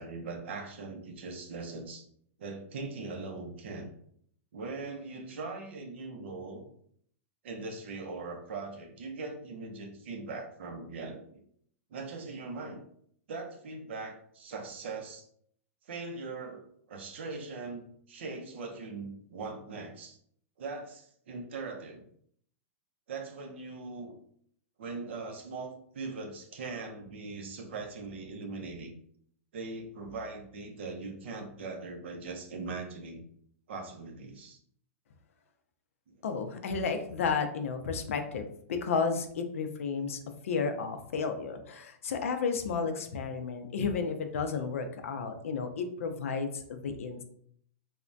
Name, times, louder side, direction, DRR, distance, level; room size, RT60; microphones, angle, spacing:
voice 1, 0.0-2.0 2.4-3.9 4.5-6.6 7.4-11.4 11.9-12.8 13.3-15.2 15.9-20.2 20.6-22.0 23.1-24.1 24.8-29.0 29.5-33.2 33.7-34.6 36.1-36.2, right 3 dB, 50° right, 4 dB, 0.5 m, -40 dB
voice 2, 36.2-40.2 40.4-47.2, left 5 dB, 65° left, 7 dB, 0.4 m, -32 dB
3.2 x 2.1 x 2.5 m, 0.65 s
supercardioid pair, 180°, 8 cm